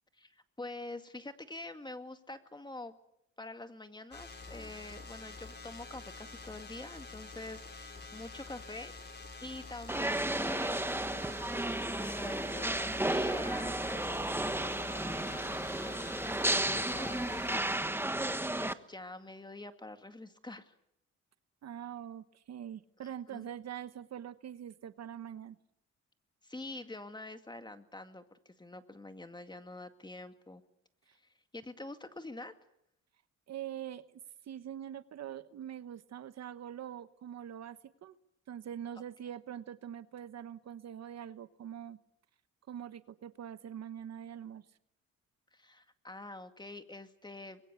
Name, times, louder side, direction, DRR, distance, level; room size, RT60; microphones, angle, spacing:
voice 1, 0.1-2.9 3.4-11.7 12.0-18.2 18.6-20.7 23.0-23.5 26.4-30.6 31.2-32.5 45.5-47.6, left 2 dB, 15° left, 8 dB, 2.2 m, -46 dB
sound 1, 4.1-17.6, left 3 dB, 35° left, 6.0 m, -47 dB
sound 2, 9.9-18.7, right 1 dB, 5° right, 1.3 m, -33 dB
voice 2, 21.6-25.6 31.1-31.2 33.5-34.1 34.4-38.2 38.5-42.0 42.7-44.7, right 10 dB, 60° right, 13 dB, 1.1 m, -44 dB
25.5 x 22.0 x 8.2 m, 0.78 s
cardioid pair, 90°, 30 cm